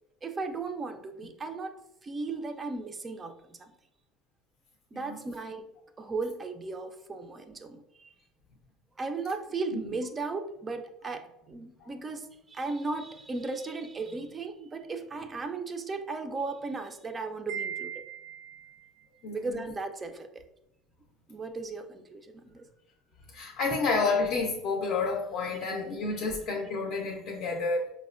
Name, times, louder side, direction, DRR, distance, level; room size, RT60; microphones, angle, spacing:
voice 1, 0.2-3.7 4.9-5.7 6.0-8.1 9.0-18.0 19.3-20.4 21.3-22.7, right 3 dB, 20° right, 7 dB, 0.3 m, -36 dB
Wind chime, 17.5-18.9, right 9 dB, 85° right, 0.5 m, -38 dB
voice 2, 19.2-19.6 23.3-27.9, left 4 dB, 50° left, -1 dB, 0.5 m, -30 dB
4.7 x 2.0 x 2.4 m, 0.82 s
cardioid pair, 130°, 0 cm